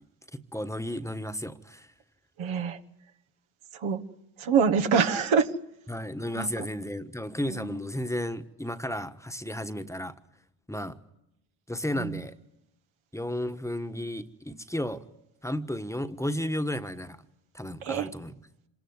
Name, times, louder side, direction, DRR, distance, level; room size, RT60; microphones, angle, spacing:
voice 1, 0.3-1.9 5.9-10.1 10.7-11.0 11.7-12.3 13.1-15.0 15.4-17.2 17.5-18.3, left 1 dB, 5° left, 8 dB, 1.3 m, -33 dB
voice 2, 2.4-2.8 3.7-4.0 4.4-5.5 6.3-6.6 7.5-7.8 12.0-12.2 17.8-18.1, right 6 dB, 75° right, 8 dB, 1.6 m, -26 dB
26.0 x 17.5 x 9.6 m, 0.84 s
cardioid pair, 85°, 48 cm